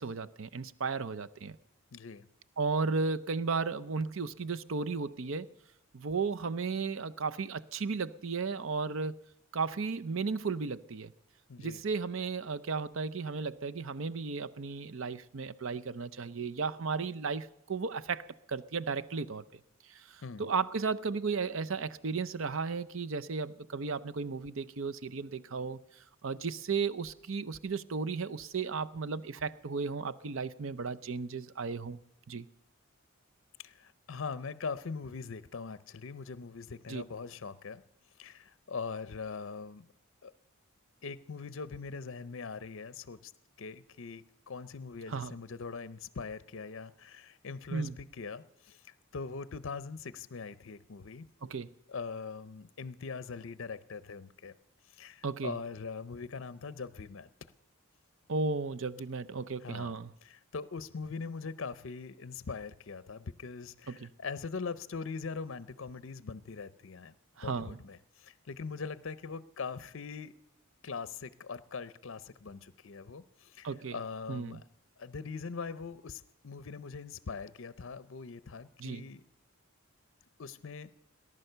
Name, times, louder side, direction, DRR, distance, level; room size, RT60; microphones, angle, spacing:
voice 1, 0.0-1.6 2.6-5.5 5.9-9.2 9.5-11.1 11.6-19.4 19.9-32.0 32.3-32.5 36.9-37.0 45.1-45.3 47.7-48.0 51.4-51.7 55.2-55.6 58.3-60.1 63.9-64.1 67.4-67.8 73.6-74.0 74.3-74.6 78.8-79.0, right 4 dB, 65° right, 0.6 m, -34 dB
voice 2, 1.9-2.3 11.5-11.8 20.2-20.5 33.6-37.8 38.2-39.9 40.2-40.3 41.0-43.3 43.6-51.3 51.9-54.5 54.9-57.3 59.6-67.1 67.4-70.3 70.8-74.6 75.0-79.2 80.4-81.0, left 5 dB, 60° left, 0.5 m, -42 dB
19.0 x 11.0 x 6.7 m
head